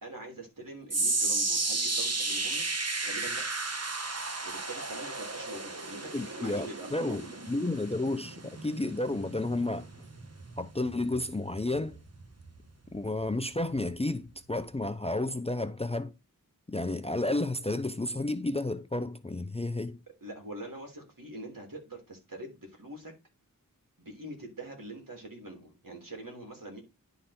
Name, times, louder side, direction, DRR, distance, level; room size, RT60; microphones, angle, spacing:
voice 1, 0.0-2.6 3.0-3.4 4.4-7.3 7.6-7.7 20.2-23.1 24.0-26.8, right 1 dB, 65° right, 3.0 m, -44 dB
sound 1, 0.9-13.2 13.5-13.9 14.5-14.6, right 3 dB, 45° right, 1.2 m, -34 dB
voice 2, 6.1-9.9 10.6-12.0 12.9-16.1 16.7-20.0, left 2 dB, 15° left, 0.5 m, -31 dB
11.0 x 3.9 x 4.2 m
wide cardioid pair, 50°, 35 cm